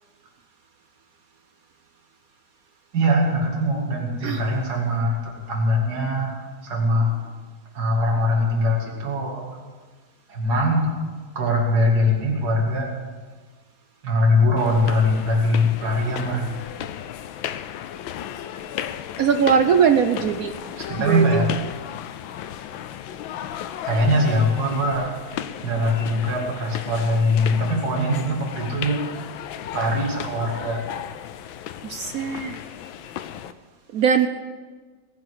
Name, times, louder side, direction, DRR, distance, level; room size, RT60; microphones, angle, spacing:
voice 1, 2.9-5.2 5.5-7.1 7.7-9.4 10.3-10.9 11.3-12.9 14.0-16.6 20.7-21.5 23.8-25.1 25.6-29.0 29.7-30.8, left 1 dB, 50° right, -1 dB, 2.8 m, -22 dB
sound 1, 14.6-33.5, left 10 dB, 75° left, 1.4 m, -35 dB
voice 2, 19.2-20.5 21.0-21.2 31.8-32.6 33.9-34.3, right 7 dB, 75° right, 8 dB, 0.8 m, -20 dB
20.5 x 6.9 x 8.3 m, 1.4 s
omnidirectional pair, 2.3 m